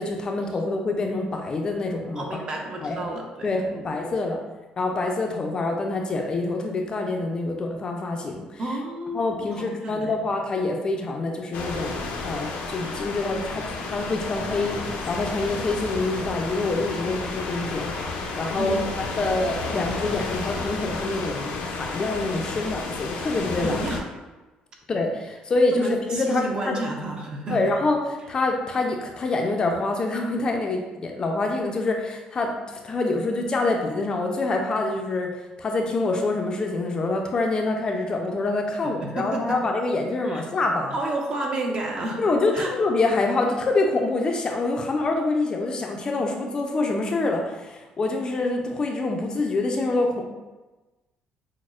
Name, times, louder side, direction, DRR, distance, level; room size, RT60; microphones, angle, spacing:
voice 1, 0.0-2.4 2.8-3.1 3.4-4.4 4.8-8.6 9.1-23.8 24.9-26.8 27.5-40.9 42.2-50.2, left 2 dB, 35° left, 2 dB, 0.4 m, -26 dB
voice 2, 2.2-3.9 8.6-10.2 18.5-19.0 23.6-24.0 25.7-27.7 39.0-39.6 40.3-40.4 40.9-42.2 42.5-42.7, right 2 dB, 35° right, 1 dB, 0.7 m, -31 dB
sound 1, 11.5-24.0, left 3 dB, 85° left, 0.5 m, -32 dB
6.1 x 2.0 x 2.4 m, 1.2 s
cardioid pair, 125°, 3 cm